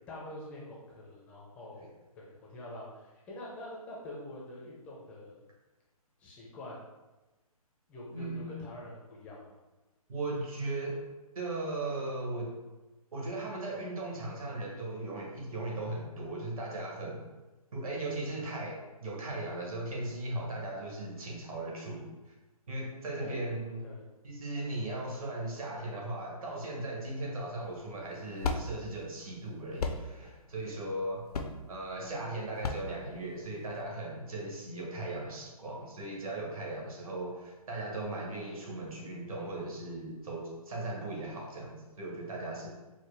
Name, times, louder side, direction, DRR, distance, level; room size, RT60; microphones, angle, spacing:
voice 1, 0.1-1.9 2.2-5.4 6.2-6.8 7.9-9.5 23.2-23.4 23.8-24.0, left 1 dB, 5° left, -5 dB, 0.4 m, -45 dB
voice 2, 8.1-8.5 10.1-11.0 11.3-12.5 13.1-17.3 17.7-22.3 22.7-23.8 24.2-31.3 31.7-42.7, right 2 dB, 65° right, -3 dB, 1.4 m, -37 dB
sound 1, 27.6-33.8, left 3 dB, 75° left, 0.5 m, -37 dB
4.6 x 2.1 x 3.2 m, 1.1 s
figure-of-eight pair, 145°, 19 cm